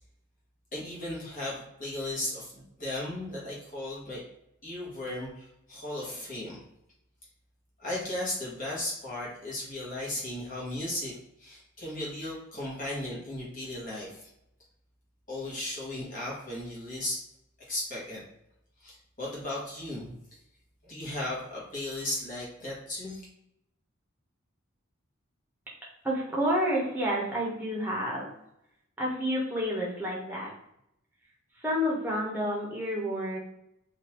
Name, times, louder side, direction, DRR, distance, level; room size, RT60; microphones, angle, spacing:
voice 1, 0.7-4.2 4.6-6.6 7.8-14.3 15.3-17.2 17.6-18.2 18.8-20.1 20.8-23.2, left 1 dB, 40° left, -5 dB, 1.2 m, -36 dB
voice 2, 26.0-28.3 29.0-30.5 31.6-33.4, equal, 10° right, -5 dB, 1.0 m, -29 dB
3.8 x 2.5 x 3.0 m, 0.80 s
head